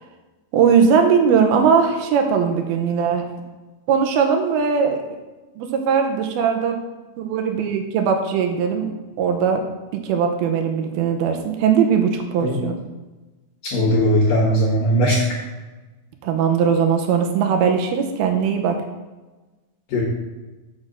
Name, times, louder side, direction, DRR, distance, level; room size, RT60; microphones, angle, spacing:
voice 1, 0.5-3.2 3.9-5.0 5.6-6.8 7.2-8.9 9.2-9.6 9.9-12.7 16.2-18.8, right 6 dB, 80° right, 4 dB, 2.3 m, -19 dB
voice 2, 13.6-15.2 19.9-20.0, equal, 65° left, -4 dB, 2.3 m, -18 dB
6.2 x 6.2 x 6.5 m, 1.2 s
omnidirectional pair, 5.3 m